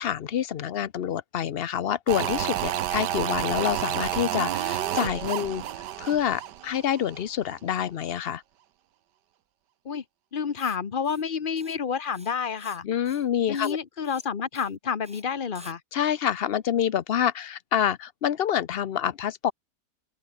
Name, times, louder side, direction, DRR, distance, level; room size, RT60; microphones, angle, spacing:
voice 1, 0.0-5.6 6.0-8.4 12.8-13.8 15.9-19.5, left 9 dB, 60° left, 0.6 m, -27 dB
sound 1, 2.1-7.2 7.5-7.6, right 11 dB, 85° right, 1.5 m, -30 dB
voice 2, 10.3-12.9 13.5-15.8, left 6 dB, 35° left, 1.0 m, -29 dB
Writing, 10.6-10.8 11.0-11.3 11.6-11.8 12.0-12.8 13.1-13.3 13.5-13.8 14.0-14.3 14.5-14.7 15.0-15.2 15.6-15.8, equal, 5° right, 2.3 m, -50 dB
omnidirectional pair, 1.8 m